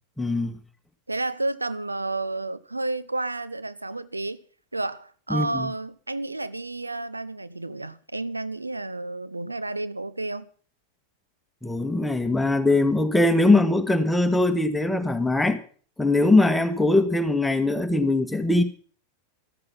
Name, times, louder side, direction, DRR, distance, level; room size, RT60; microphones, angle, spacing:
voice 1, 0.2-0.6 5.3-5.7 11.6-15.6 16.0-18.6, left 2 dB, 5° left, 1.5 m, -21 dB
voice 2, 1.1-4.4 4.7-10.5, right 2 dB, 80° right, 0.8 m, -31 dB
14.0 x 13.5 x 5.7 m
figure-of-eight pair, 90°, 0 cm